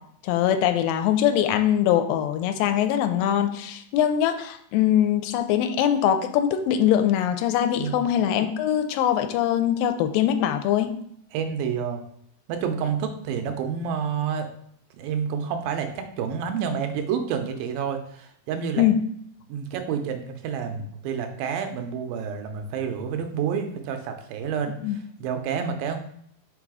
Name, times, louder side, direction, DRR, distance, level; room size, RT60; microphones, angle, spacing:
voice 1, 0.2-10.9 18.8-19.0 24.8-25.0, left 10 dB, 85° left, 8 dB, 2.3 m, -22 dB
voice 2, 7.8-8.1 11.3-12.0 12.5-14.5 15.0-18.8 19.5-26.0, right 7 dB, 85° right, 6 dB, 2.5 m, -29 dB
5.6 x 3.9 x 4.8 m, 0.69 s
omnidirectional pair, 4.0 m